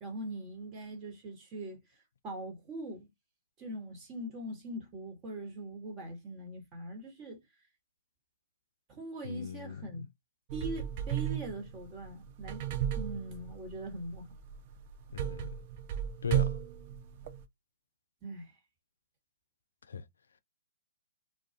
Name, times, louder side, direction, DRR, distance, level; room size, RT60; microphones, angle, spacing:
voice 1, 0.0-1.8 2.2-3.1 3.6-7.4 8.9-10.0 10.5-12.7 12.9-14.3 18.2-18.5, right 1 dB, 25° right, 1.2 m, -42 dB
voice 2, 9.2-9.9 15.1-15.5 16.2-16.6 19.9-20.0, left 6 dB, 75° left, 0.4 m, -38 dB
sound 1, 10.5-17.4, right 10 dB, 40° right, 0.4 m, -35 dB
2.3 x 2.2 x 2.7 m
figure-of-eight pair, 125°, 0 cm